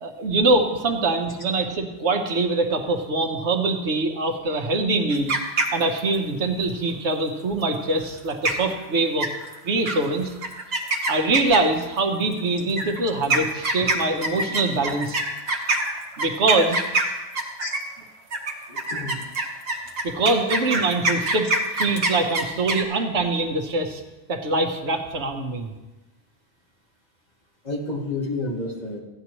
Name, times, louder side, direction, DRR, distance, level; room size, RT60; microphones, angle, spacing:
voice 1, 0.0-5.3 5.7-9.3 9.6-10.3 11.1-15.2 16.2-16.8 20.0-24.0 24.3-25.7, right 2 dB, 90° right, 5 dB, 1.3 m, -23 dB
sound 1, 5.1-6.1 8.1-8.2 8.4-8.8 9.2-9.5 9.9-10.0 10.4-11.8 12.7-17.9 18.3-22.8, right 2 dB, 65° right, 1.4 m, -25 dB
voice 2, 18.7-19.2 27.6-29.0, left 2 dB, 40° left, -1 dB, 1.7 m, -30 dB
14.5 x 9.6 x 3.0 m, 1.1 s
omnidirectional pair, 1.1 m